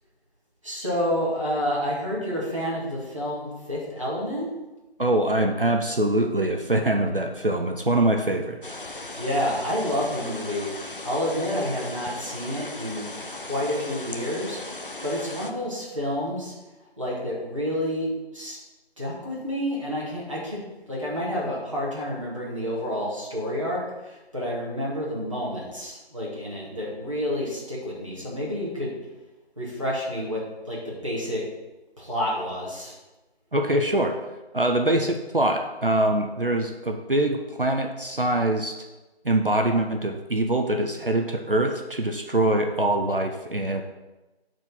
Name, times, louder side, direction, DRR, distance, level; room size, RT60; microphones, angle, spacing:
voice 1, 0.6-4.5 9.2-16.5 17.0-18.6 19.0-20.6 20.9-28.9 29.6-31.4 32.0-32.9, equal, 30° right, -6 dB, 1.7 m, -29 dB
voice 2, 5.0-8.6 33.5-34.2 34.5-38.8 39.2-43.8, right 1 dB, 55° right, 4 dB, 0.7 m, -23 dB
sound 1, 8.6-15.5, left 2 dB, 55° left, 0.7 m, -37 dB
6.4 x 4.6 x 5.7 m, 1.1 s
figure-of-eight pair, 175°, 33 cm